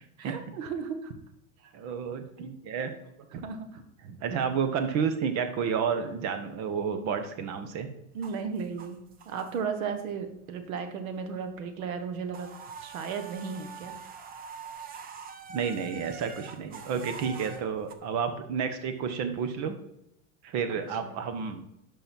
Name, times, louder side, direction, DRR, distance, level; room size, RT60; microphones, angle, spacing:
voice 1, 0.2-1.1 1.6-1.7 2.4-2.5 2.8-2.9 3.3-3.8 8.1-9.0 9.2-12.5 12.8-14.0 20.7-21.1, right 6 dB, 90° right, 7 dB, 1.6 m, -35 dB
voice 2, 1.7-2.9 4.0-7.9 15.5-19.7 20.4-21.6, right 6 dB, 40° right, 8 dB, 1.3 m, -31 dB
sound 1, 8.1-9.9 10.3-11.2 11.4-11.6 11.9-17.9, right 5 dB, 20° right, 0.6 m, -45 dB
11.0 x 5.6 x 4.5 m, 0.81 s
supercardioid pair, 150°, 40 cm